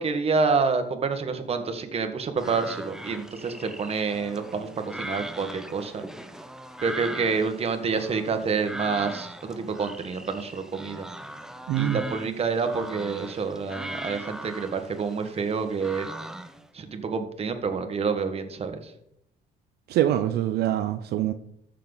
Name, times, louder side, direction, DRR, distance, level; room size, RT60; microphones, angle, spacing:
voice 1, 0.0-6.0 6.8-11.1 11.8-16.1 16.7-18.9, right 5 dB, 35° right, 7 dB, 1.5 m, -28 dB
sound 1, 2.4-16.7, right 1 dB, 5° right, 0.8 m, -40 dB
voice 2, 11.7-12.0 19.9-21.3, right 12 dB, 70° right, 9 dB, 0.6 m, -24 dB
13.5 x 6.6 x 4.0 m, 0.74 s
cardioid pair, 110°, 17 cm